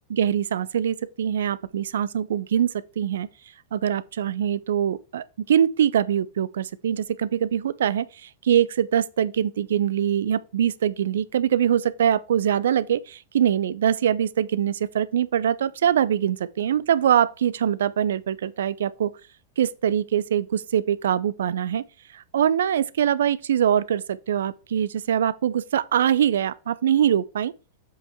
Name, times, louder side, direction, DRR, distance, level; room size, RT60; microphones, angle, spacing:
voice 1, 0.1-3.3 3.7-19.1 19.6-21.8 22.1-27.5, right 9 dB, 65° right, 0.4 m, -23 dB
7.8 x 5.3 x 3.5 m
figure-of-eight pair, 95°, 0 cm